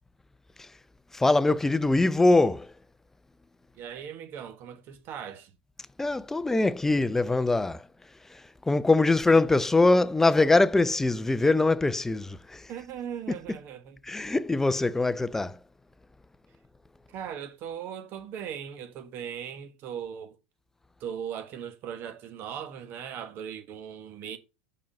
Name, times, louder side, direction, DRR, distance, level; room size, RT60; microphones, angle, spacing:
voice 1, 1.1-2.7 6.0-7.8 8.7-12.7 14.1-15.6, left 2 dB, 5° left, 0.4 m, -23 dB
voice 2, 3.7-5.5 12.7-14.0 17.1-20.4 21.0-24.4, right 8 dB, 45° right, 1.2 m, -38 dB
5.3 x 5.2 x 5.3 m
supercardioid pair, 125°, 5 cm